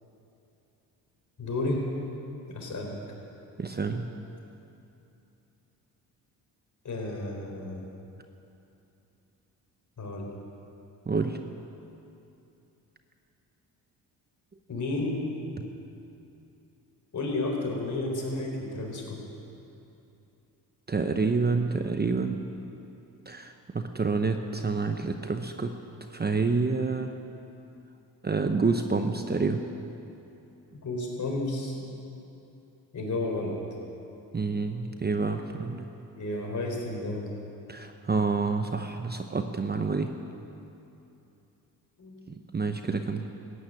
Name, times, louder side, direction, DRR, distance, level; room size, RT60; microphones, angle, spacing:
voice 1, 1.4-1.8 2.5-2.9 6.8-7.9 10.0-10.3 14.7-15.3 17.1-19.2 30.7-31.8 32.9-33.6 36.1-37.4 42.0-42.2, left 2 dB, 45° left, 0 dB, 4.3 m, -32 dB
voice 2, 3.6-4.1 11.1-11.4 20.9-22.4 23.3-25.8 26.1-27.1 28.2-29.6 34.3-35.9 37.7-40.1 42.3-43.3, right 4 dB, 25° right, 6 dB, 0.9 m, -28 dB
14.5 x 9.5 x 8.8 m, 2.8 s
supercardioid pair, 65°, 41 cm